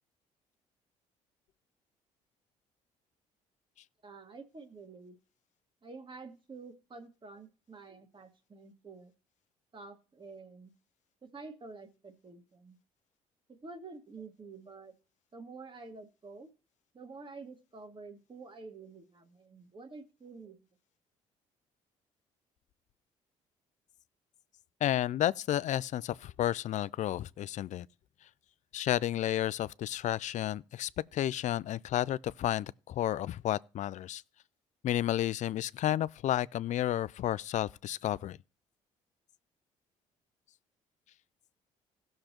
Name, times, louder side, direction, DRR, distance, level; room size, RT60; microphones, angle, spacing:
voice 1, 4.0-5.2 5.8-9.1 9.7-10.7 11.2-12.8 13.5-14.9 15.3-16.5 16.9-20.6, right 4 dB, 30° right, 1.8 m, -49 dB
voice 2, 24.8-27.9 28.7-34.2 34.8-38.4, left 12 dB, 50° left, 0.4 m, -31 dB
17.0 x 6.5 x 3.0 m
hypercardioid pair, 60°, 15 cm